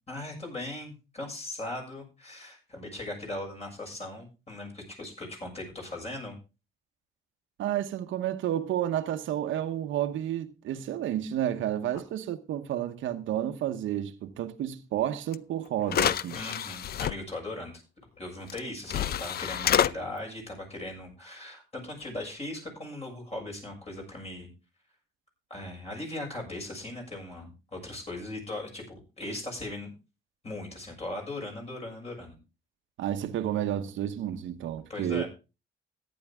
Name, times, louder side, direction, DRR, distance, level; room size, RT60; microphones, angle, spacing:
voice 1, 0.1-6.4 11.9-12.0 16.3-17.7 18.2-24.5 25.5-29.9 30.4-32.4 34.9-35.3, left 1 dB, 30° left, 6.8 m, -39 dB
voice 2, 7.6-16.4 33.0-35.2, right 11 dB, 80° right, 1.0 m, -31 dB
sound 1, 15.3-15.4 15.9-17.1 18.5-18.6 18.9-19.9, left 10 dB, 50° left, 0.5 m, -27 dB
14.5 x 9.9 x 3.6 m
cardioid pair, 90°, 20 cm